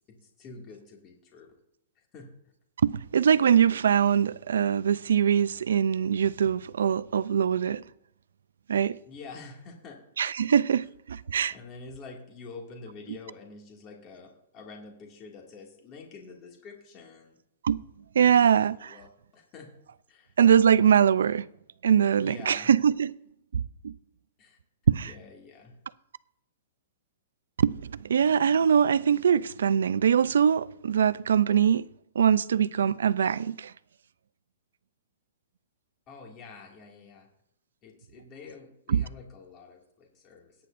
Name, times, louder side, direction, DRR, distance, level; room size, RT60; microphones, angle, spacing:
voice 1, 0.1-1.5 2.1-2.3 9.1-10.0 11.5-17.3 18.2-19.1 19.3-19.7 20.1-20.3 22.2-22.7 24.4-24.6 25.0-25.7 36.1-37.3 37.8-40.6, left 4 dB, 30° left, 2.2 m, -47 dB
voice 2, 2.8-7.8 8.7-9.0 10.2-11.6 17.6-17.8 18.1-19.0 20.4-21.5 21.8-23.1 23.5-23.9 24.9-25.1 27.6-31.8 32.2-33.7 38.9-39.0, right 8 dB, 80° right, 0.4 m, -23 dB
17.0 x 9.6 x 2.6 m
hypercardioid pair, 145°, 0 cm